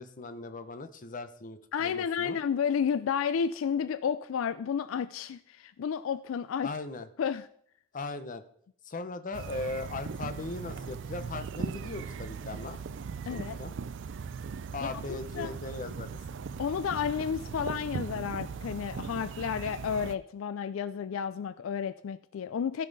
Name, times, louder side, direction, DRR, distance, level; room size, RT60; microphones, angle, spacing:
voice 1, 0.0-2.4 6.6-7.1 7.9-8.4 8.8-12.8 13.3-13.7 14.7-16.2, left 3 dB, 40° left, 10 dB, 0.8 m, -38 dB
voice 2, 1.7-6.7 7.2-7.5 13.3-13.6 15.1-15.5 16.6-22.9, left 7 dB, 80° left, 14 dB, 0.3 m, -31 dB
sound 1, 9.3-20.2, right 5 dB, 65° right, 0.4 m, -39 dB
16.0 x 5.6 x 4.0 m, 0.65 s
head